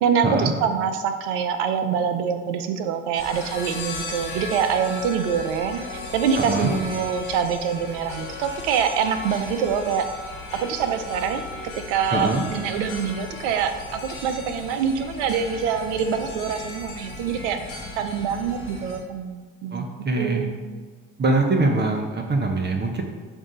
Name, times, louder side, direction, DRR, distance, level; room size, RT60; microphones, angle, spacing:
voice 1, 0.0-5.8 6.1-10.1 10.5-11.4 11.9-17.6 18.0-19.8 20.2-20.5, right 7 dB, 80° right, 9 dB, 0.6 m, -25 dB
sound 1, 3.1-19.0, left 3 dB, 85° left, 1.6 m, -36 dB
voice 2, 6.4-6.7 12.1-12.4 19.7-20.5 21.2-23.0, right 3 dB, 30° right, 2 dB, 0.9 m, -23 dB
7.3 x 2.7 x 5.1 m, 1.5 s
hypercardioid pair, 60°, 35 cm